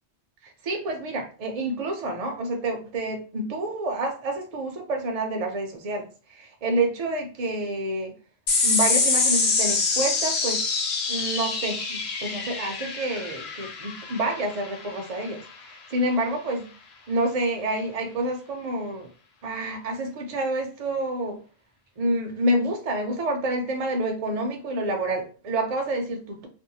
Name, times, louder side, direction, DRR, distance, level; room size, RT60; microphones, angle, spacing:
voice 1, 0.6-8.1 8.6-10.6 11.1-16.7 17.1-19.1 19.4-21.4 22.0-26.5, right 1 dB, 45° right, 2 dB, 0.5 m, -28 dB
sound 1, 8.5-15.3, left 4 dB, 75° left, 0.9 m, -25 dB
2.6 x 2.1 x 2.7 m, 0.37 s
omnidirectional pair, 1.1 m